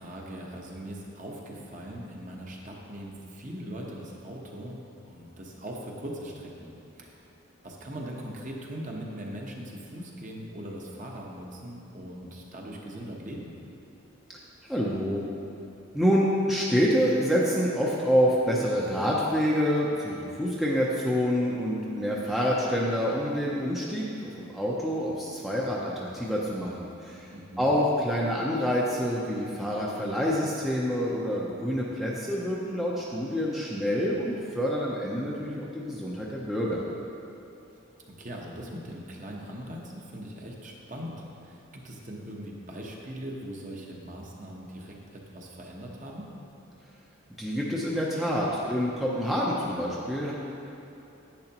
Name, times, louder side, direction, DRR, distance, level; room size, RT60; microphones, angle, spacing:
voice 1, 0.0-4.8 5.1-7.2 7.6-13.5 27.3-27.7 38.2-46.3, equal, 35° right, -1 dB, 1.0 m, -40 dB
voice 2, 14.7-15.2 15.9-27.3 27.6-36.8 47.4-50.3, equal, ahead, -5 dB, 0.6 m, -27 dB
10.5 x 9.1 x 3.0 m, 2.9 s
head